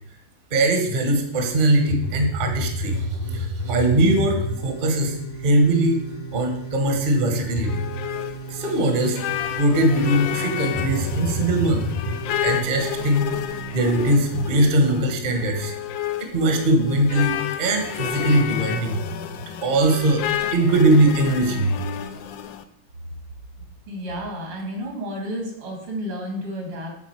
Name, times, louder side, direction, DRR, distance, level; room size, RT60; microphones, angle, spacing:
voice 1, 0.5-5.2 5.4-6.0 6.3-7.8 8.5-11.8 12.4-15.7 16.2-19.0 19.6-21.8, right 1 dB, 30° right, 4 dB, 1.0 m, -21 dB
sound 1, 1.4-14.5, equal, 30° left, 0.9 m, -32 dB
sound 2, 7.3-22.6, left 11 dB, 75° left, 1.2 m, -31 dB
voice 2, 23.9-27.0, equal, 80° right, 0 dB, 3.0 m, -31 dB
8.5 x 3.9 x 6.2 m, 0.72 s
omnidirectional pair, 2.3 m